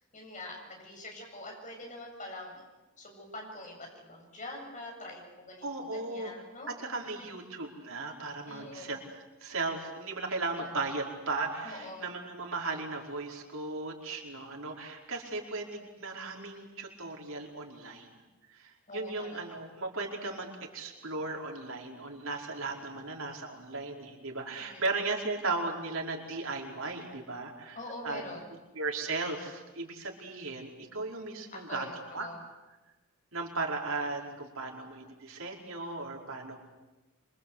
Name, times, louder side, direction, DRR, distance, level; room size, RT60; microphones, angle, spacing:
voice 1, 0.1-2.6 3.0-5.6 5.9-6.7 8.5-8.9 10.6-10.7 11.6-12.1 18.9-19.6 24.6-24.8 27.7-28.4 31.5-32.4, left 1 dB, 40° left, 1 dB, 7.7 m, -44 dB
voice 2, 5.6-6.3 6.7-9.0 9.4-15.7 16.0-18.1 18.5-18.6 18.9-20.5 20.7-27.8 28.0-28.2 28.7-31.9 32.1-32.3 33.3-36.6, right 3 dB, 85° right, 0 dB, 5.0 m, -36 dB
26.5 x 25.0 x 8.3 m, 1.1 s
head